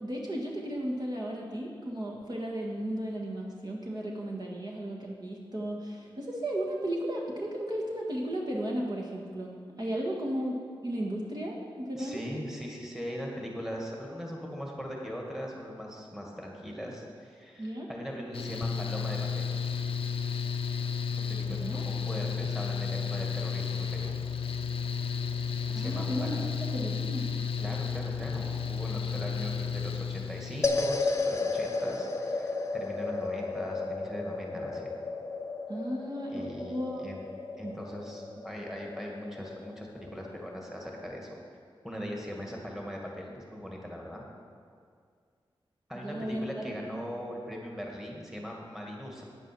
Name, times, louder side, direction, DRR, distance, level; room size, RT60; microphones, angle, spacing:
voice 1, 0.0-10.5 10.8-12.2 17.6-17.9 21.5-21.8 25.7-27.3 35.7-37.0 37.6-37.7 46.0-47.0, right 1 dB, 45° right, -2 dB, 1.5 m, -35 dB
voice 2, 11.9-19.5 21.0-24.2 25.8-26.4 27.6-34.9 36.3-37.2 37.6-41.4 41.8-44.2 45.9-49.2, equal, 5° right, -1 dB, 1.9 m, -40 dB
Mechanical fan, 18.3-30.9, left 6 dB, 85° left, 0.5 m, -32 dB
sound 1, 30.6-41.1, left 3 dB, 30° left, 0.8 m, -34 dB
9.3 x 9.0 x 6.1 m, 2.1 s
wide cardioid pair, 90°, 9 cm